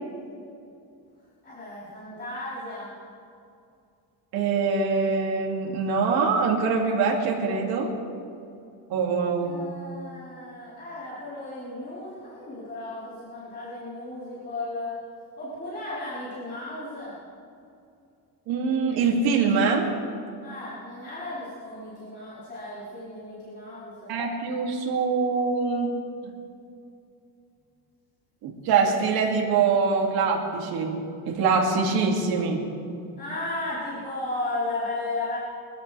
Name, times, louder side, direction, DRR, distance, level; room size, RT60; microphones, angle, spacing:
voice 1, 1.4-2.9 9.4-14.9 15.4-17.2 20.4-24.1 33.2-35.4, left 2 dB, 25° left, -11 dB, 4.3 m, -35 dB
voice 2, 4.3-7.9 8.9-9.5 18.5-19.9 24.1-25.9 26.2-26.3 28.4-32.6, right 5 dB, 65° right, -1 dB, 2.8 m, -24 dB
24.0 x 14.0 x 3.5 m, 2.5 s
cardioid pair, 175°, 40 cm